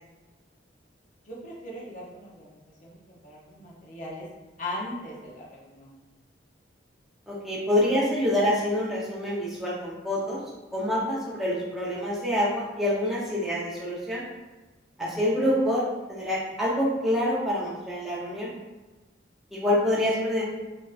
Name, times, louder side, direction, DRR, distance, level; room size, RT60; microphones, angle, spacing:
voice 1, 1.2-3.0 3.2-4.3 4.6-5.9 15.0-15.5, left 1 dB, 40° left, -5 dB, 0.6 m, -39 dB
voice 2, 7.3-10.4 10.7-14.2 15.0-18.5 19.5-20.4, left 1 dB, ahead, -7 dB, 0.7 m, -26 dB
3.4 x 2.5 x 2.4 m, 1.1 s
head